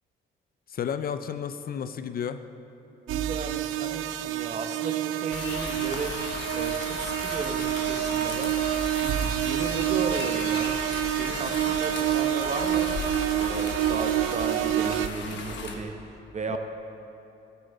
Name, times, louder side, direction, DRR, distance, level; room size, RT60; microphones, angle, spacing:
voice 1, 0.7-2.4 16.5-16.6, left 8 dB, 50° left, 10 dB, 0.4 m, -32 dB
voice 2, 3.1-6.2 6.5-8.6 9.0-12.9 13.3-16.6, right 4 dB, 35° right, 6 dB, 0.8 m, -35 dB
sound 1, 3.1-15.1, right 12 dB, 85° right, 0.4 m, -28 dB
sound 2, 5.3-15.7, left 4 dB, 65° left, 1.1 m, -36 dB
13.0 x 7.0 x 4.1 m, 2.8 s
cardioid pair, 90°, 20 cm